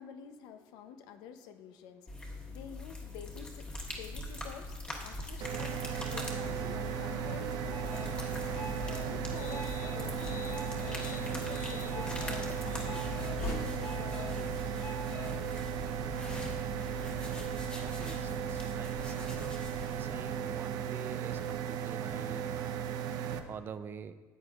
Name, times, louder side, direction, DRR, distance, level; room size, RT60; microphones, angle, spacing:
voice 1, 0.0-14.6, left 7 dB, 85° left, 0.7 m, -50 dB
sound 1, 2.1-21.0, left 2 dB, 15° left, 1.4 m, -44 dB
sound 2, 5.4-23.4, right 9 dB, 65° right, 0.7 m, -36 dB
sound 3, 6.2-20.0, left 2 dB, 45° left, 1.0 m, -44 dB
voice 2, 17.0-19.6 20.0-23.0 23.3-24.1, right 7 dB, 35° right, 0.4 m, -46 dB
14.0 x 8.5 x 2.4 m
cardioid pair, 140°, 7 cm